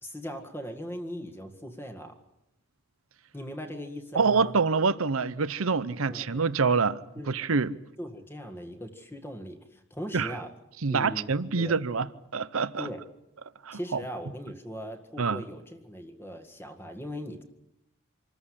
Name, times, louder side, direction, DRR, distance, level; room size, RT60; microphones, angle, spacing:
voice 1, 0.0-2.2 3.3-4.6 6.1-6.5 7.2-7.5 8.0-10.5 10.9-11.8 12.8-13.0 13.7-17.4, equal, 10° left, 1.9 m, -39 dB
voice 2, 4.1-7.0 7.3-7.8 10.1-10.3 10.8-12.9 13.6-14.0 15.2-15.4, right 4 dB, 75° right, 0.8 m, -26 dB
26.5 x 14.0 x 9.9 m
head